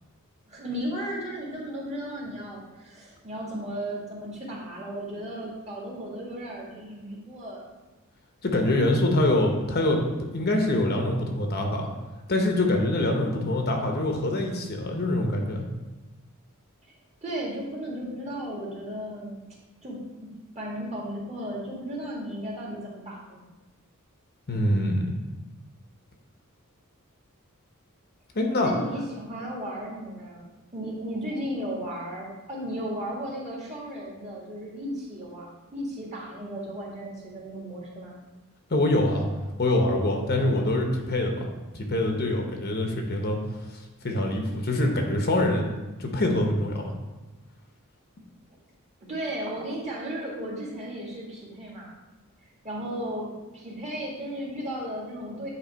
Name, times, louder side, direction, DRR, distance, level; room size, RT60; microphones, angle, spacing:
voice 1, 0.5-7.7 17.2-19.4 19.8-20.3 20.6-23.4 28.6-30.5 30.7-38.1 49.1-51.9 52.6-55.5, right 1 dB, 30° right, -4 dB, 1.7 m, -35 dB
voice 2, 8.4-10.0 10.3-11.9 12.3-15.6 24.5-25.1 28.3-28.7 38.7-39.3 39.6-41.4 41.7-43.4 44.0-46.9, left 1 dB, 45° left, 2 dB, 0.9 m, -24 dB
9.0 x 3.2 x 4.5 m, 1.1 s
head